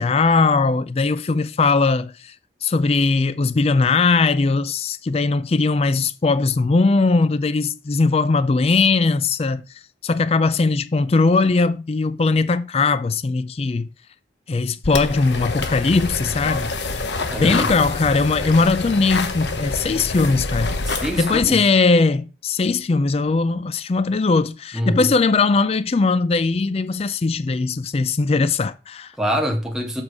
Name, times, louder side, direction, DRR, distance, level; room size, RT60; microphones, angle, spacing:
voice 1, 0.0-2.3 2.6-9.6 10.0-13.9 14.5-16.7 17.4-20.7 21.2-29.1, left 3 dB, 35° left, 0.4 m, -19 dB
sound 1, 14.8-21.5, left 3 dB, 75° left, 1.1 m, -27 dB
voice 2, 17.3-17.7 20.9-21.6 24.7-25.1 29.2-30.0, equal, 5° right, 1.7 m, -24 dB
7.3 x 6.3 x 4.9 m
head